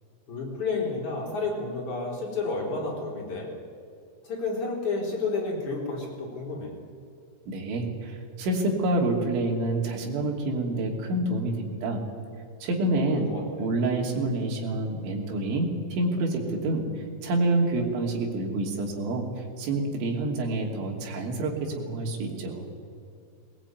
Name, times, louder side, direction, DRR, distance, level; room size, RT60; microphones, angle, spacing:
voice 1, 0.3-3.5 4.2-6.7 13.1-13.7, left 3 dB, 40° left, -2 dB, 5.1 m, -31 dB
voice 2, 7.5-12.0 12.6-13.3 13.6-16.9 17.2-19.3 19.6-22.7, right 2 dB, 75° right, 0 dB, 5.2 m, -27 dB
20.0 x 19.5 x 9.4 m, 2.4 s
omnidirectional pair, 5.4 m